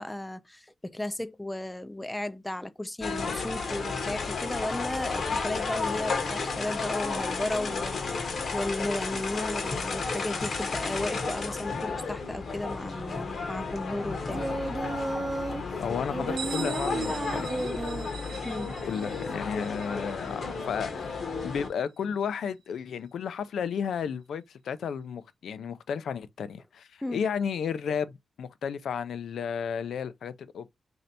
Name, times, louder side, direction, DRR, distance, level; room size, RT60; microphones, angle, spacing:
voice 1, 0.0-14.4 18.4-18.7 27.0-27.2, left 1 dB, 10° left, 0.3 m, -34 dB
sound 1, 3.0-21.7, left 4 dB, 55° left, 0.9 m, -33 dB
Singing, 14.3-15.6 16.1-18.1 18.9-19.5, right 2 dB, 30° right, 0.6 m, -34 dB
voice 2, 15.8-17.5 18.9-30.7, left 7 dB, 85° left, 0.4 m, -33 dB
Bell, 16.4-21.9, right 7 dB, 70° right, 0.8 m, -44 dB
3.2 x 2.7 x 4.0 m
wide cardioid pair, 130°, 0 cm